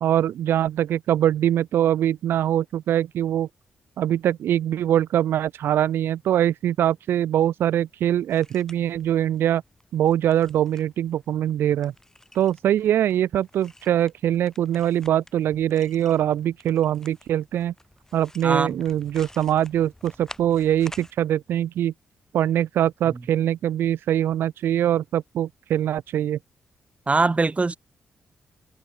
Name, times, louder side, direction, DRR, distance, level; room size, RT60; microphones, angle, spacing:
voice 1, 0.0-3.5 4.0-9.6 9.9-11.9 12.3-17.7 18.1-21.9 22.3-26.4, right 11 dB, 75° right, 0.4 m, -23 dB
sound 1, 8.3-21.1, left 1 dB, 15° left, 5.0 m, -50 dB
voice 2, 18.4-18.8 23.1-23.2 27.1-27.8, right 3 dB, 35° right, 1.3 m, -22 dB
hypercardioid pair, 45°, 4 cm